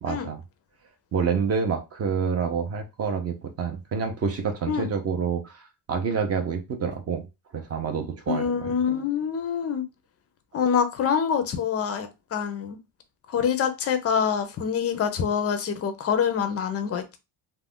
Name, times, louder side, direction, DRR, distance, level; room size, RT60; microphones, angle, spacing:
voice 1, 0.0-0.4 1.1-7.3 7.5-8.7, right 6 dB, 30° right, 5 dB, 0.4 m, -28 dB
voice 2, 8.3-9.8 10.5-12.8 13.3-17.2, left 7 dB, 35° left, 8 dB, 0.4 m, -25 dB
2.4 x 2.1 x 3.5 m, 0.25 s
cardioid pair, 145°, 49 cm